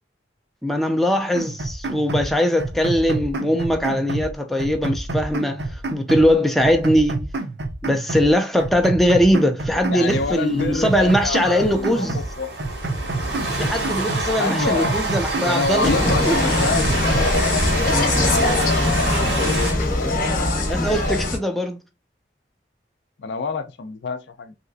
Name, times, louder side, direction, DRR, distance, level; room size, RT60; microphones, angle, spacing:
voice 1, 0.6-7.3 7.8-12.2 13.6-15.9 16.3-16.4 20.7-21.8, equal, ahead, 0.4 m, -20 dB
sound 1, 1.4-2.3 2.6-4.3 4.6-6.3 6.6-8.3 8.6-10.3 10.6-12.3 12.6-14.3 14.6-16.3 16.6-17.4, right 2 dB, 65° right, 0.6 m, -28 dB
voice 2, 9.9-12.5 13.6-13.7 14.3-15.0 15.4-19.7 23.2-24.5, left 4 dB, 70° left, 0.5 m, -27 dB
Train, 10.0-19.7, right 2 dB, 80° right, 1.4 m, -28 dB
Insect, 15.8-21.4, left 2 dB, 45° left, 0.8 m, -21 dB
3.3 x 2.8 x 2.6 m
head